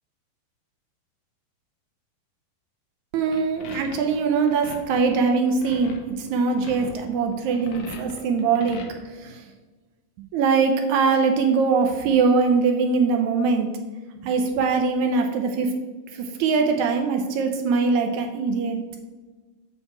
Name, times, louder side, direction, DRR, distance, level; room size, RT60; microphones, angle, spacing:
voice 1, 3.1-8.8 9.2-9.4 10.3-13.7 14.2-15.7 16.1-18.8, right 4 dB, 75° right, 4 dB, 1.8 m, -22 dB
sound 1, 3.3-8.9, left 4 dB, 70° left, 2.3 m, -40 dB
8.2 x 5.4 x 4.7 m, 1.3 s
omnidirectional pair, 3.9 m